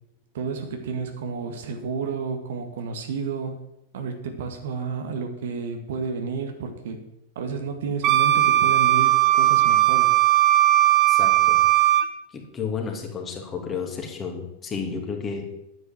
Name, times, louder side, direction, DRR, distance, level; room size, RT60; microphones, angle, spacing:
voice 1, 0.3-3.6 3.9-7.0 7.4-10.2, right 5 dB, 60° right, 6 dB, 2.0 m, -31 dB
Wind instrument woodwind instrument, 8.0-12.1, right 14 dB, 35° right, 1.0 m, -18 dB
voice 2, 11.1-11.6 12.3-15.5, left 6 dB, 25° left, 2 dB, 3.0 m, -32 dB
11.0 x 9.3 x 7.4 m, 0.83 s
figure-of-eight pair, 90°, 0 cm